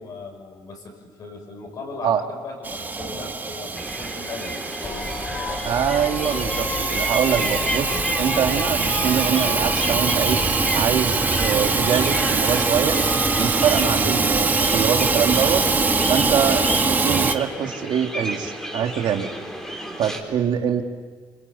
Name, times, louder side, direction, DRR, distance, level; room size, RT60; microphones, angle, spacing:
voice 1, 0.0-5.1 5.5-5.7, left 3 dB, 50° left, 3 dB, 6.4 m, -38 dB
Hiss / Toilet flush / Trickle dribble, 2.6-17.4, right 4 dB, 20° right, 1.3 m, -23 dB
sound 1, 3.7-20.2, right 1 dB, 5° left, 4.0 m, -32 dB
sound 2, 4.8-16.8, left 3 dB, 30° left, 2.8 m, -33 dB
voice 2, 5.7-10.4 10.7-13.0 13.4-15.6 16.1-19.3 20.0-20.8, right 8 dB, 65° right, 4 dB, 2.1 m, -24 dB
26.5 x 26.0 x 8.4 m, 1.5 s
cardioid pair, 135°, 8 cm